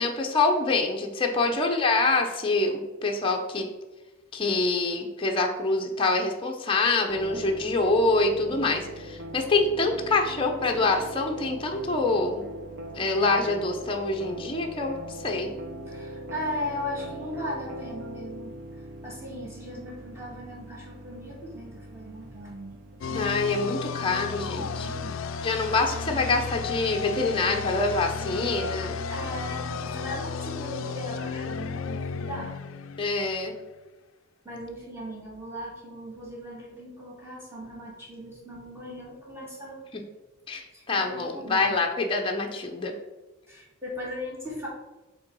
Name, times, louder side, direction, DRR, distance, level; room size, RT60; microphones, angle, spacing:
voice 1, 0.0-3.7 4.3-12.4 12.9-15.5 23.1-24.9 25.4-28.9 33.0-33.5 40.5-42.9, left 3 dB, 25° left, 2 dB, 0.6 m, -25 dB
sound 1, 7.1-23.8, right 1 dB, 55° right, 0.7 m, -41 dB
voice 2, 15.9-18.5 19.0-23.3 24.4-25.2 29.1-32.5 34.4-39.8 40.7-41.8 43.5-44.7, left 1 dB, 10° right, -5 dB, 2.0 m, -38 dB
sound 2, 23.0-33.6, left 6 dB, 70° left, 0.4 m, -33 dB
5.5 x 3.8 x 5.4 m, 1.1 s
head